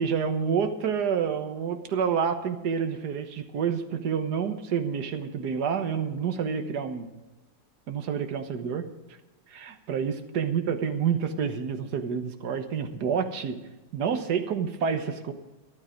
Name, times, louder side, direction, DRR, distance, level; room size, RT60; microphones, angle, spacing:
voice 1, 0.0-7.1 7.9-8.8 9.5-13.6 13.9-15.3, right 6 dB, 65° right, 7 dB, 1.7 m, -28 dB
13.5 x 12.5 x 5.2 m, 1.1 s
omnidirectional pair, 1.9 m